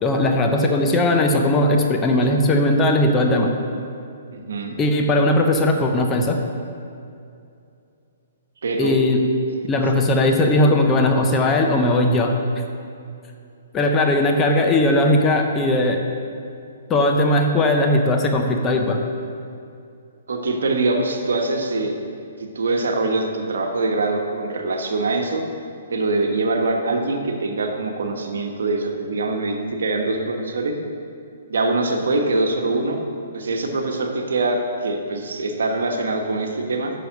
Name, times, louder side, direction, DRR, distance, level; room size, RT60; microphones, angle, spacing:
voice 1, 0.0-3.6 4.8-6.4 8.8-9.2 9.7-12.4 13.7-16.0 16.9-19.0, left 1 dB, 20° left, 3 dB, 0.9 m, -18 dB
voice 2, 4.3-4.8 8.6-9.0 20.3-21.9 22.4-25.4 25.9-30.8 31.5-33.0 33.3-36.9, right 2 dB, 75° right, 3 dB, 1.2 m, -23 dB
7.0 x 6.3 x 6.5 m, 2.5 s
hypercardioid pair, 135°, 0 cm